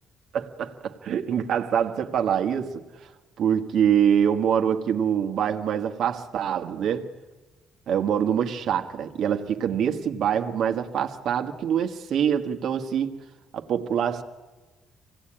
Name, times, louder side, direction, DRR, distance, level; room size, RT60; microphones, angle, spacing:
voice 1, 0.3-2.8 3.4-7.1 7.9-13.2 13.5-14.2, right 8 dB, 55° right, 1.6 m, -25 dB
25.0 x 18.0 x 8.8 m
cardioid pair, 155°, 0 cm